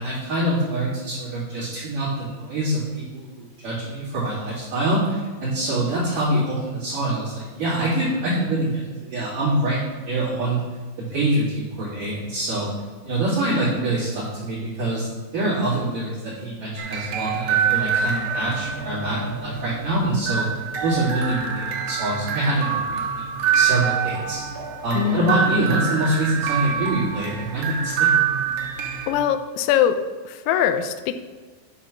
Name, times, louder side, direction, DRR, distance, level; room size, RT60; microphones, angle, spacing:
voice 1, 0.0-10.6 11.1-12.7 13.0-15.1 15.3-20.5 20.8-23.3 23.5-24.4 24.8-28.1, right 1 dB, 45° right, -10 dB, 3.6 m, -25 dB
sound 1, 16.8-29.1, right 7 dB, 75° right, 2.6 m, -25 dB
voice 2, 24.9-25.5 29.1-30.0 30.2-31.2, left 10 dB, 80° left, 9 dB, 2.9 m, -22 dB
10.0 x 4.1 x 6.0 m, 1.4 s
omnidirectional pair, 5.8 m